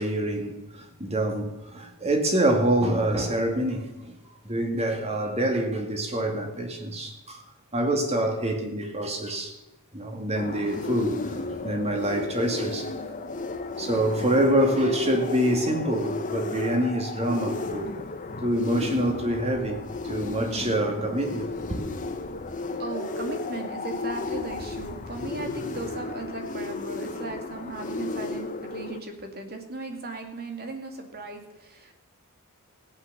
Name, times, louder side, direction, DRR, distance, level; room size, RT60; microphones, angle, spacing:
voice 1, 0.0-4.1 4.4-7.4 7.7-9.5 9.9-12.9 13.8-17.9 18.4-21.8, right 1 dB, 30° right, 2.3 m, -26 dB
sound 1, 10.3-29.0, left 3 dB, 35° left, 1.1 m, -34 dB
voice 2, 22.8-31.9, right 3 dB, 45° right, 2.3 m, -37 dB
16.0 x 9.1 x 6.9 m
head